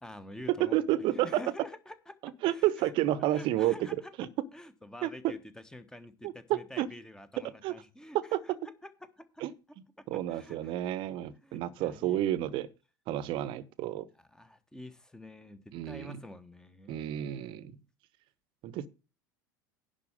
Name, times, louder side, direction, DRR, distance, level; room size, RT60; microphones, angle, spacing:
voice 1, 0.0-2.2 2.4-2.9 3.3-4.1 4.5-8.5 8.8-9.4 10.0-10.8 11.2-12.6 14.3-17.6, left 1 dB, 5° left, 1.2 m, -48 dB
voice 2, 0.6-1.4 2.4-3.8 4.2-4.3 5.0-5.3 6.2-6.9 7.6-7.7 8.1-8.6 9.4-9.5 10.1-12.7 13.1-14.1 15.7-16.2 16.9-17.7 18.6-18.9, right 13 dB, 50° right, 0.9 m, -30 dB
10.5 x 4.5 x 7.3 m
figure-of-eight pair, 75°, 11 cm